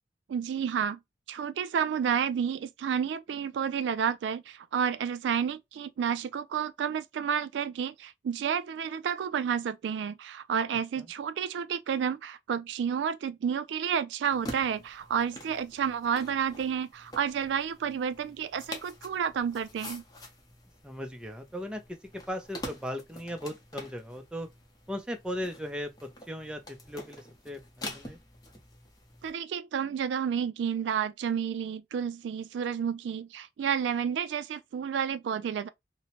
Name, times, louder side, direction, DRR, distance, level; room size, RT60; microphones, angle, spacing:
voice 1, 0.3-1.0 1.3-20.0 29.2-35.7, right 7 dB, 85° right, 0.3 m, -30 dB
sound 1, 14.3-29.3, left 1 dB, 20° left, 0.7 m, -46 dB
voice 2, 20.8-24.5 24.9-25.9 26.3-28.2, equal, 5° right, 0.4 m, -37 dB
2.8 x 2.1 x 2.8 m
head